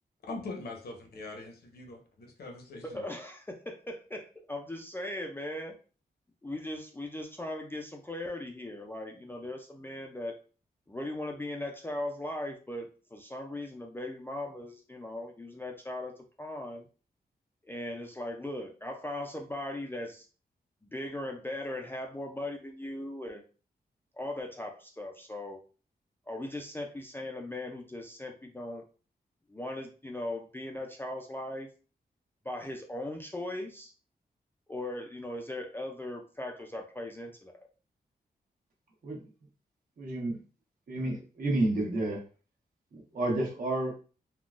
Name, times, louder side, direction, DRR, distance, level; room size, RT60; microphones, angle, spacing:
voice 1, 0.2-3.0, left 3 dB, 75° left, 2 dB, 0.8 m, -42 dB
voice 2, 2.8-5.7 6.4-10.4 10.9-16.1 16.4-16.9 17.7-20.3 20.8-23.4 24.1-25.6 26.3-28.8 29.5-31.7 32.4-33.9 34.7-37.7, left 1 dB, 15° left, 1 dB, 0.3 m, -38 dB
voice 3, 40.0-40.4 40.9-42.2 42.9-44.0, right 2 dB, 60° right, -1 dB, 1.0 m, -30 dB
3.7 x 2.1 x 2.4 m, 0.37 s
wide cardioid pair, 145°, 16 cm